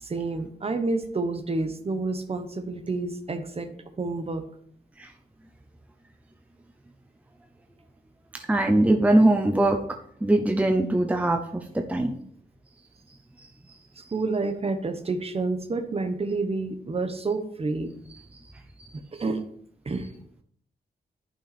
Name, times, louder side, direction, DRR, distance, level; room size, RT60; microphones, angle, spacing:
voice 1, 0.0-3.7 4.0-4.4 14.1-17.9 19.1-19.4 19.8-20.1, right 3 dB, 35° right, 8 dB, 1.0 m, -29 dB
voice 2, 8.5-9.8 10.2-12.1, right 1 dB, 10° right, 4 dB, 0.7 m, -21 dB
11.0 x 5.8 x 4.2 m, 0.62 s
wide cardioid pair, 165°, 18 cm